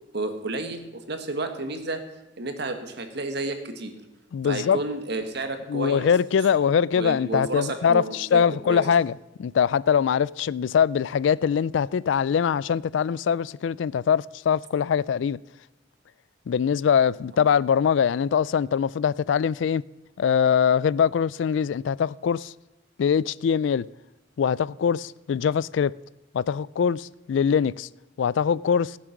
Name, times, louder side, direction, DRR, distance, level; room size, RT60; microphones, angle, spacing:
voice 1, 0.1-2.0 2.4-3.9 4.4-6.1 6.9-8.8, right 2 dB, 60° right, 1.6 m, -31 dB
voice 2, 4.3-4.8 5.7-9.1 9.4-15.4 16.5-19.8 20.2-22.5 23.0-23.9 24.4-25.9 26.3-27.9 28.2-29.0, left 7 dB, 65° left, 0.3 m, -22 dB
17.0 x 7.5 x 5.9 m
head